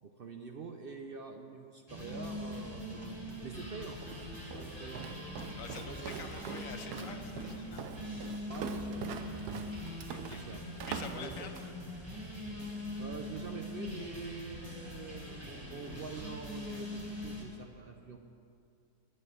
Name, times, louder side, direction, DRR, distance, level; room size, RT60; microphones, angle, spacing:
voice 1, 0.0-3.2 3.4-5.1 5.9-6.2 8.5-9.7 10.3-10.6 11.1-11.5 13.0-18.2, right 4 dB, 60° right, 4 dB, 0.6 m, -46 dB
sound 1, 1.9-17.4, left 1 dB, 15° right, 1.8 m, -42 dB
Walk footsteps, 4.0-11.8, right 7 dB, 80° right, 1.2 m, -43 dB
voice 2, 5.5-7.9 10.1-10.4 10.8-11.6, left 6 dB, 60° left, 6 dB, 1.2 m, -47 dB
9.4 x 8.0 x 9.3 m, 2.5 s
omnidirectional pair, 1.7 m